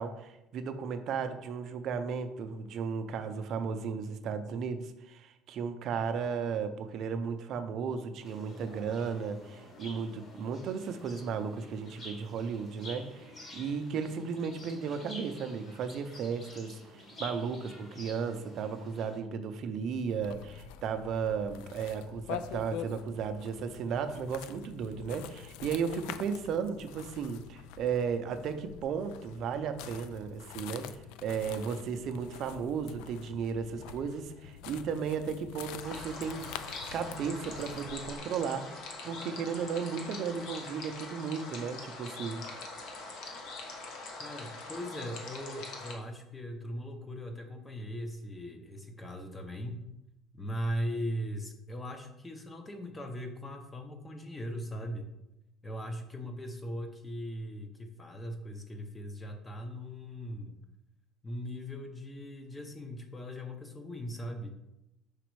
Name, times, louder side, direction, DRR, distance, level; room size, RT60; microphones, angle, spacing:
voice 1, 0.0-36.6 36.9-42.5, right 6 dB, 45° right, 8 dB, 0.5 m, -35 dB
sound 1, 8.2-19.2, left 1 dB, 30° left, 1.5 m, -49 dB
sound 2, 20.2-38.2, left 9 dB, 85° left, 0.3 m, -46 dB
sound 3, 35.8-45.9, left 3 dB, 60° left, 1.0 m, -43 dB
voice 2, 44.2-49.8 50.3-55.1 55.6-60.6 61.2-64.5, equal, 10° left, 5 dB, 0.6 m, -39 dB
5.1 x 4.1 x 4.6 m, 0.91 s
cardioid pair, 155°, 0 cm